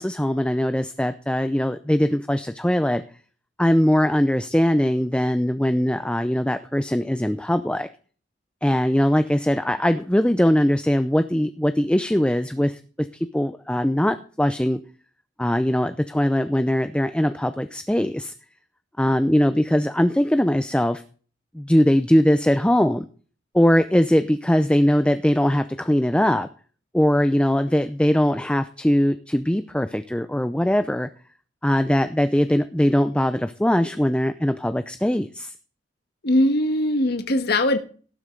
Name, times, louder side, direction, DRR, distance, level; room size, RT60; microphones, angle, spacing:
voice 1, 0.0-3.0 3.6-7.9 8.6-12.8 13.1-14.8 15.4-18.3 19.0-21.0 21.5-23.1 23.5-26.5 26.9-31.1 31.6-35.5, equal, 5° left, 10 dB, 0.6 m, -21 dB
voice 2, 36.2-37.8, left 1 dB, 60° left, 8 dB, 1.5 m, -20 dB
18.0 x 7.9 x 3.9 m, 0.40 s
head